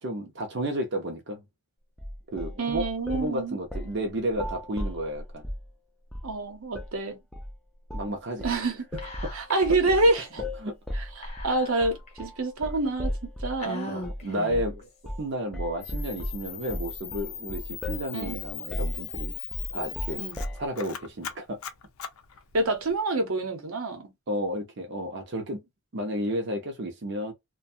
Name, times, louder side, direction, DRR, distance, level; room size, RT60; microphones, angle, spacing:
voice 1, 0.0-1.4 2.3-5.4 7.9-8.5 9.2-9.3 10.6-10.8 13.9-14.9 15.2-19.3 19.7-20.2 20.6-21.6 24.3-25.6 25.9-27.3, equal, 55° right, 0.6 m, -32 dB
sound 1, 2.0-3.3 3.7-4.0 4.3-5.7 6.1-6.4 6.7-6.9 7.3-7.6 7.9-8.2 8.4-13.6 14.0-14.2 14.5-14.8 15.1-15.3 15.5-20.7, left 1 dB, ahead, 0.4 m, -35 dB
voice 2, 2.6-3.6 6.2-7.2 8.4-8.9 9.3-10.4 10.9-14.0 18.1-18.4 20.2-20.4 22.5-24.1, right 2 dB, 85° right, 0.8 m, -27 dB
Whispering, 9.0-9.7 10.0-10.1 11.2-12.1 12.7-12.8 13.6-14.8, left 1 dB, 30° left, 0.8 m, -39 dB
Camera, 15.8-23.0, left 10 dB, 90° left, 0.5 m, -39 dB
2.5 x 2.2 x 2.6 m
head